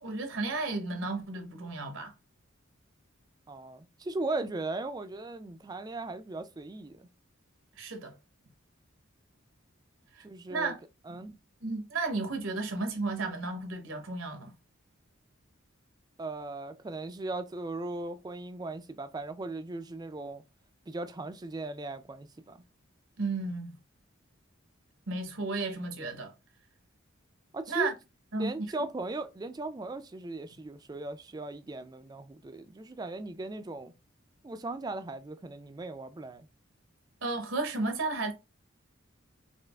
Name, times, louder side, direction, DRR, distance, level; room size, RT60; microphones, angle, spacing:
voice 1, 0.0-2.1 7.8-8.1 10.1-10.8 11.1-11.2 11.6-14.5 23.2-23.7 25.1-26.3 27.7-27.9 28.3-28.5 28.8-28.9 37.2-38.3, right 3 dB, 70° right, 0.8 m, -33 dB
voice 2, 3.5-7.1 10.2-10.8 11.1-11.4 16.2-20.4 20.9-22.6 27.5-27.9 28.3-33.9 34.4-36.5, right 2 dB, 20° right, 0.3 m, -38 dB
4.4 x 2.4 x 2.3 m
head